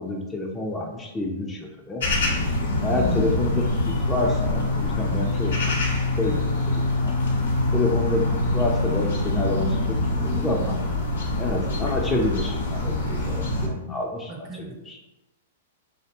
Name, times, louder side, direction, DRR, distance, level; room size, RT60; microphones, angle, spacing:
voice 1, 0.0-2.0 2.8-7.2 7.7-10.8 11.4-14.5 14.9-15.0, left 2 dB, 15° left, 0 dB, 0.3 m, -28 dB
sound 1, 2.0-13.7, left 2 dB, 75° left, 0.7 m, -24 dB
voice 2, 2.9-3.3 14.3-14.8, right 2 dB, 45° right, 2 dB, 0.6 m, -35 dB
2.5 x 2.1 x 2.9 m, 0.98 s
hypercardioid pair, 115°, 0 cm